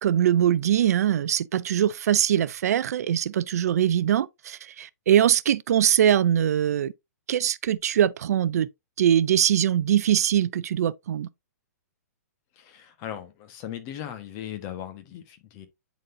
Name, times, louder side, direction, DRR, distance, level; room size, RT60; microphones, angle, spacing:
voice 1, 0.0-6.9 7.3-8.7 9.0-11.3, right 10 dB, 65° right, 0.5 m, -22 dB
voice 2, 12.6-15.7, left 10 dB, 35° left, 1.4 m, -38 dB
9.0 x 4.1 x 2.7 m
hypercardioid pair, 135°, 9 cm